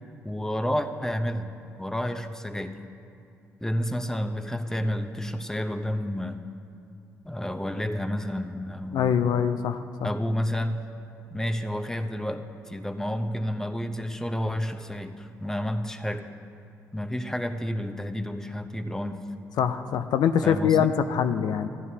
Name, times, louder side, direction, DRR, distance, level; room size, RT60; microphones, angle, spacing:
voice 1, 0.2-1.5 1.8-2.8 3.6-6.4 7.2-9.3 10.0-10.8 11.3-16.3 16.9-19.2 20.4-20.9, equal, 5° left, 7 dB, 0.8 m, -30 dB
voice 2, 8.9-10.1 19.6-21.7, left 8 dB, 65° left, 9 dB, 0.4 m, -24 dB
15.0 x 11.0 x 2.8 m, 2.6 s
hypercardioid pair, 50°, 7 cm